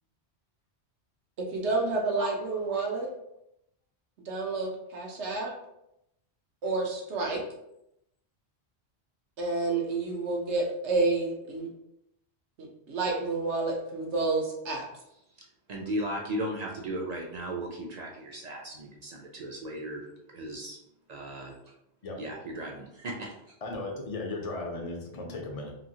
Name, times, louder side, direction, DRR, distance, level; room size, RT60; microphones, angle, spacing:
voice 1, 1.5-3.1 4.3-5.5 6.6-7.4 9.4-11.7 12.6-14.9, right 3 dB, 90° right, 0 dB, 1.1 m, -29 dB
voice 2, 15.7-20.1 20.3-20.8 21.1-21.5 22.1-23.3, right 1 dB, 55° right, 0 dB, 0.4 m, -36 dB
voice 3, 23.6-25.7, left 2 dB, 45° left, 1 dB, 0.5 m, -36 dB
3.0 x 2.7 x 2.7 m, 0.82 s
omnidirectional pair, 1.1 m